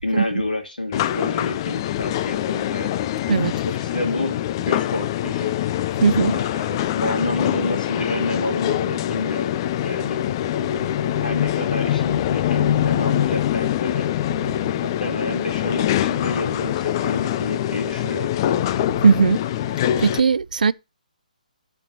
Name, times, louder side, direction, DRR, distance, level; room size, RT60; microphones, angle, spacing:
voice 1, 0.0-2.9 3.6-4.4 4.6-5.5 6.3-9.5 9.8-10.2 11.2-14.1 14.8-18.3, left 2 dB, 80° left, 2.3 m, -29 dB
sound 1, 0.9-20.2, left 12 dB, 30° left, 0.4 m, -24 dB
voice 2, 6.0-6.3 19.0-19.4 20.0-20.7, right 5 dB, 70° right, 0.4 m, -17 dB
12.5 x 4.4 x 2.7 m
figure-of-eight pair, 135°, 5 cm